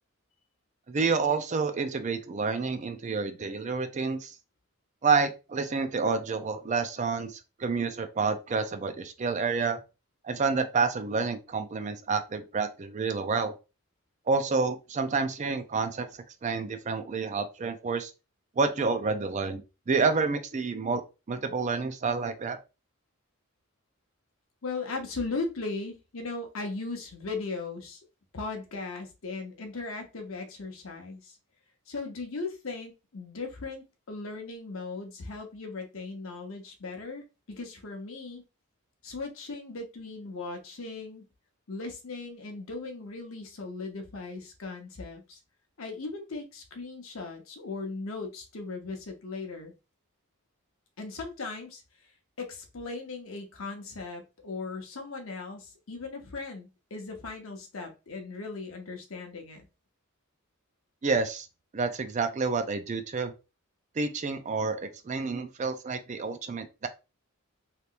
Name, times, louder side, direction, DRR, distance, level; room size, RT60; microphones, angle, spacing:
voice 1, 0.9-4.4 5.0-9.8 10.2-13.5 14.3-16.1 16.4-18.1 18.6-19.6 19.9-21.0 21.3-22.6 61.0-61.5 61.7-63.3 64.0-66.9, right 4 dB, 35° right, 0.4 m, -29 dB
voice 2, 24.6-28.0 28.3-31.4 31.9-38.4 39.0-41.3 41.7-45.4 45.8-49.7 51.0-52.1 52.4-59.6, left 3 dB, 65° left, 0.8 m, -38 dB
3.3 x 2.9 x 2.5 m
head